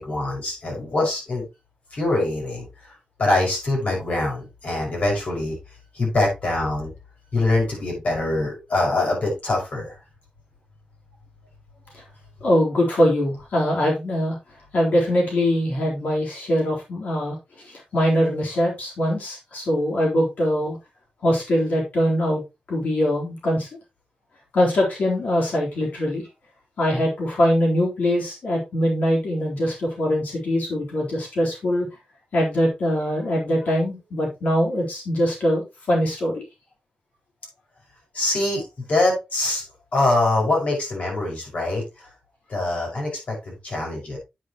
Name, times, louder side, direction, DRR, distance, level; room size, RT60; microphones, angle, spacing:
voice 1, 0.0-1.4 1.9-2.7 3.2-5.6 5.9-6.9 7.3-10.0 38.1-39.6 39.9-42.1 42.5-44.2, left 2 dB, 60° left, -1 dB, 5.7 m, -24 dB
voice 2, 12.4-14.4 14.7-17.4 17.6-20.8 21.2-22.4 22.7-23.7 24.5-26.3 26.8-31.9 32.3-36.3, equal, 80° left, -2 dB, 3.9 m, -22 dB
9.4 x 8.5 x 3.0 m, 0.24 s
wide cardioid pair, 125°, 3 cm